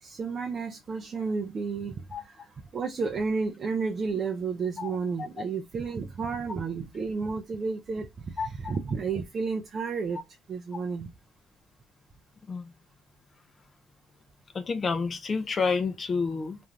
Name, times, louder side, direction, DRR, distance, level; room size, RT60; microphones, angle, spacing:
voice 1, 0.0-10.2 10.5-11.1, right 5 dB, 35° right, 0.4 m, -32 dB
voice 2, 14.5-16.6, left 4 dB, 30° left, 0.4 m, -29 dB
2.5 x 2.3 x 3.1 m
cardioid pair, 155°, 0 cm